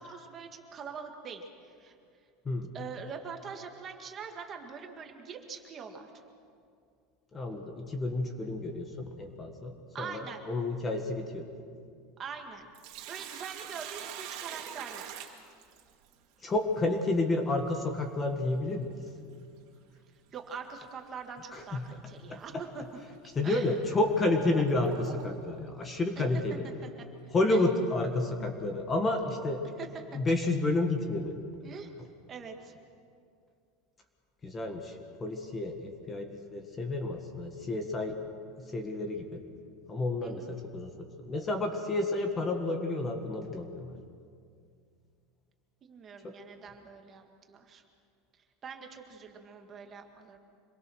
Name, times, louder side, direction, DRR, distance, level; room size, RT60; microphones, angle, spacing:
voice 1, 0.0-2.0 2.7-6.1 9.9-10.4 12.2-12.7 13.1-15.2 20.3-22.8 23.4-23.8 26.8-26.9 27.5-27.7 29.8-30.2 31.6-31.9 32.3-32.7 40.2-40.5 45.8-47.8 48.6-50.4, right 6 dB, 25° right, 3 dB, 1.9 m, -43 dB
voice 2, 7.3-11.5 16.4-19.0 21.5-21.9 22.3-22.9 23.3-26.6 27.3-29.6 30.1-31.4 34.4-38.2 38.6-39.4 39.9-44.0 46.2-46.4, left 2 dB, 15° left, 5 dB, 1.5 m, -30 dB
Sink (filling or washing), 12.5-16.1 18.5-18.6 20.5-20.7 21.2-21.3 22.1-22.2 22.9-23.0 23.7-25.6, right 9 dB, 55° right, 2.5 m, -43 dB
26.5 x 22.0 x 6.4 m, 2.3 s
supercardioid pair, 170°, 0 cm